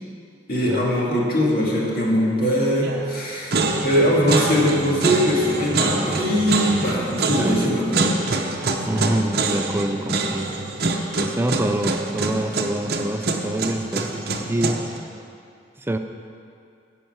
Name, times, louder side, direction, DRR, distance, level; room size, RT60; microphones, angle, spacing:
voice 1, 0.5-8.0, equal, 55° left, -4 dB, 2.2 m, -21 dB
sound 1, 2.8-3.2 3.5-15.0, right 3 dB, 55° right, 0.8 m, -25 dB
voice 2, 7.3-7.8 8.8-10.5 11.2-14.9 15.8-16.0, right 1 dB, 10° right, 6 dB, 0.4 m, -26 dB
10.0 x 5.8 x 7.9 m, 2.4 s
head